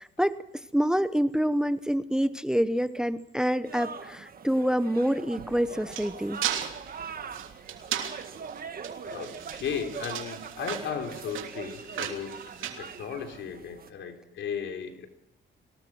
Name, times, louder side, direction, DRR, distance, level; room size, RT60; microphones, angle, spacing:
voice 1, 0.0-6.4, equal, 5° right, 13 dB, 0.9 m, -27 dB
sound 1, 3.6-13.9, right 6 dB, 50° right, 1.7 m, -42 dB
sound 2, 5.3-13.6, right 10 dB, 80° right, 3.1 m, -37 dB
voice 2, 9.1-15.1, left 7 dB, 70° left, 4 dB, 3.8 m, -36 dB
24.0 x 19.0 x 6.2 m, 0.80 s
cardioid pair, 90°, 20 cm